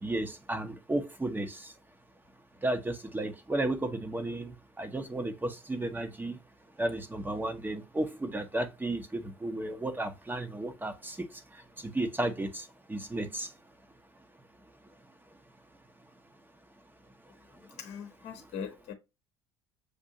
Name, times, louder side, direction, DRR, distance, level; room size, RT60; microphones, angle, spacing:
voice 1, 0.0-1.7 2.6-6.4 6.8-11.2 11.8-13.5, right 1 dB, 15° right, 0.8 m, -33 dB
voice 2, 17.8-18.9, left 7 dB, 55° left, 0.9 m, -40 dB
6.6 x 2.7 x 2.7 m
hypercardioid pair, 65°, 14 cm